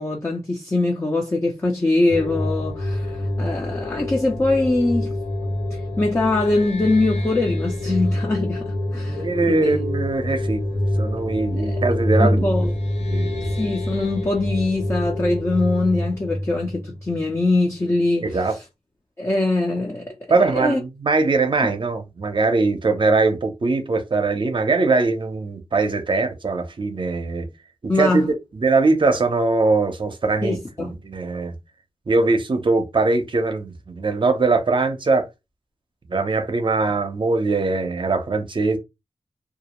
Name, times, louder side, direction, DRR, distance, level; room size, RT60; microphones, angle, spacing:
voice 1, 0.0-5.1 6.0-9.8 11.6-11.8 12.2-12.7 13.6-18.3 19.2-20.8 27.9-28.3 30.4-30.9, left 2 dB, 25° left, 0.5 m, -22 dB
sound 1, 2.1-17.6, left 1 dB, 75° left, 0.7 m, -26 dB
voice 2, 9.1-12.5 13.1-13.5 18.2-18.6 20.3-27.5 27.8-31.5 32.1-35.3 36.1-38.8, right 3 dB, 50° right, 0.6 m, -21 dB
2.3 x 2.0 x 2.9 m
wide cardioid pair, 65°, 11 cm